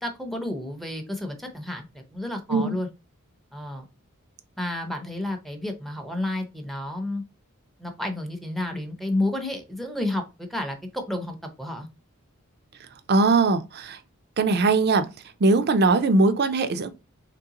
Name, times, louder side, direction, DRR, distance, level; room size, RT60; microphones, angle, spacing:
voice 1, 0.0-2.9 3.5-3.8 4.6-7.2 7.8-10.2 10.5-11.9, left 1 dB, ahead, 0.6 m, -31 dB
voice 2, 13.1-14.0 14.4-15.1 15.4-16.9, right 3 dB, 50° right, 0.5 m, -20 dB
3.7 x 3.2 x 2.9 m
head